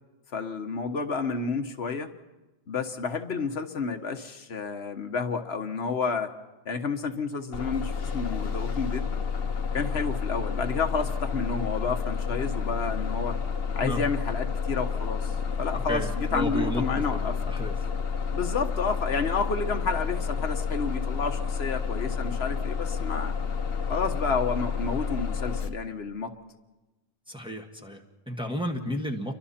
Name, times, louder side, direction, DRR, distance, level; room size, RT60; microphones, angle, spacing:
voice 1, 0.3-2.1 2.7-6.3 6.6-9.1 9.7-13.4 13.7-17.4 18.3-23.3 23.9-26.3, left 4 dB, 85° left, 6 dB, 1.5 m, -30 dB
Bus, 7.5-25.7, left 6 dB, 70° left, 1.3 m, -30 dB
voice 2, 15.9-16.8 17.1-17.7 27.3-29.3, equal, 5° right, 2 dB, 1.7 m, -32 dB
29.5 x 24.0 x 4.3 m, 1.1 s
omnidirectional pair, 1.0 m